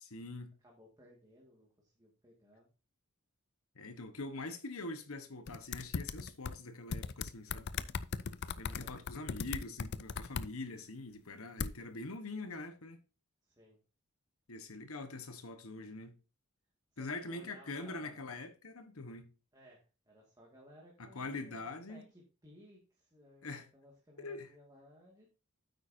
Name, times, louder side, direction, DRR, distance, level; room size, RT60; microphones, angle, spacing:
voice 1, 0.0-0.5 3.7-7.7 8.6-13.0 14.5-16.1 17.0-19.3 21.0-22.0 23.4-23.7 24.2-24.5, left 2 dB, 70° left, 1.3 m, -44 dB
voice 2, 0.6-2.7 8.6-9.0 13.4-13.8 15.7-16.0 16.9-18.2 19.5-25.3, equal, 20° right, 2.0 m, -60 dB
sound 1, 5.5-6.5 6.9-10.5 11.6-11.7, left 6 dB, 50° left, 0.5 m, -38 dB
9.4 x 8.2 x 2.7 m
head